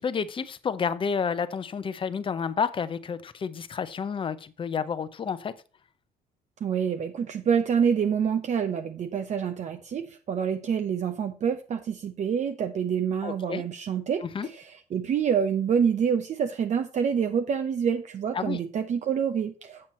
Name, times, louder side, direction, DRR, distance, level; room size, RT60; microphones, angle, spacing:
voice 1, 0.0-5.5 13.2-13.6 14.2-14.5 18.3-18.6, left 6 dB, 30° left, 13 dB, 0.7 m, -30 dB
voice 2, 6.6-19.9, right 7 dB, 45° right, 7 dB, 0.7 m, -27 dB
7.7 x 7.3 x 4.3 m, 0.36 s
cardioid pair, 110°, 17 cm